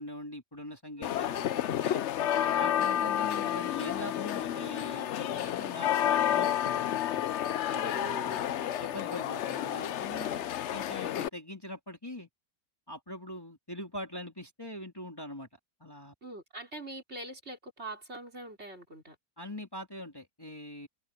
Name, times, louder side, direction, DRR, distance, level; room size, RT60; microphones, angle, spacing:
voice 1, 0.0-2.0 2.6-7.3 8.8-10.3 10.7-12.3 12.9-15.5 15.8-16.1 19.4-20.9, left 1 dB, 15° left, 2.8 m, -42 dB
sound 1, 1.0-11.3, left 11 dB, 60° left, 0.8 m, -30 dB
voice 2, 7.5-8.7 10.3-10.5 16.2-19.2, right 2 dB, 45° right, 4.6 m, -43 dB
omnidirectional pair, 1.6 m